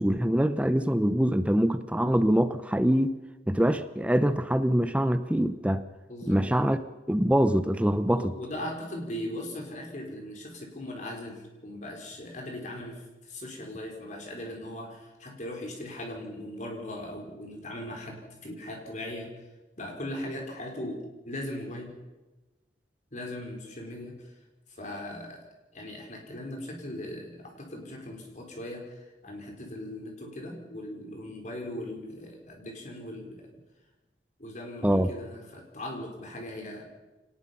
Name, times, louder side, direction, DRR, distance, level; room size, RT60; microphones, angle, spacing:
voice 1, 0.0-3.2 3.5-5.8 6.3-6.8 7.1-8.3 34.8-35.1, equal, 5° right, 11 dB, 0.7 m, -24 dB
voice 2, 6.1-6.4 8.1-19.3 19.8-21.9 23.1-24.3 24.7-25.4 25.7-33.5 34.4-36.8, left 1 dB, 45° left, 2 dB, 4.4 m, -39 dB
25.5 x 19.0 x 5.8 m, 1.1 s
head